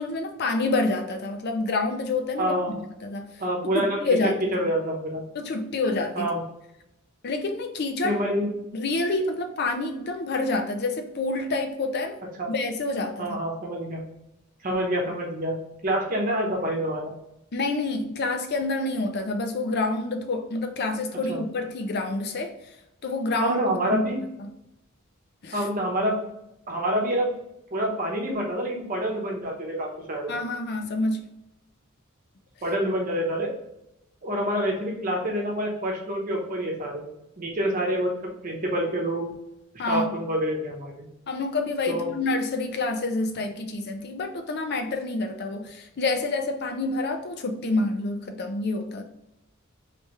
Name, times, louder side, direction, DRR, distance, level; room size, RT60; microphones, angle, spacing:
voice 1, 0.0-3.3 3.7-4.4 5.3-6.3 7.2-8.2 8.7-12.2 12.5-13.4 17.5-22.5 23.0-23.6 23.9-24.1 25.4-25.6 30.3-31.3 39.8-40.1 41.3-49.0, left 2 dB, 50° left, 5 dB, 0.5 m, -28 dB
voice 2, 2.4-2.8 3.4-5.2 6.1-6.4 8.0-8.5 12.4-12.5 13.2-14.0 14.6-15.6 15.8-17.1 21.3-21.4 23.4-24.2 25.5-26.2 26.7-27.3 27.7-30.3 32.6-33.5 34.2-37.1 37.4-39.3 39.9-41.1 41.9-42.1, right 1 dB, 40° right, 0 dB, 1.1 m, -27 dB
3.4 x 3.2 x 3.1 m, 0.87 s
head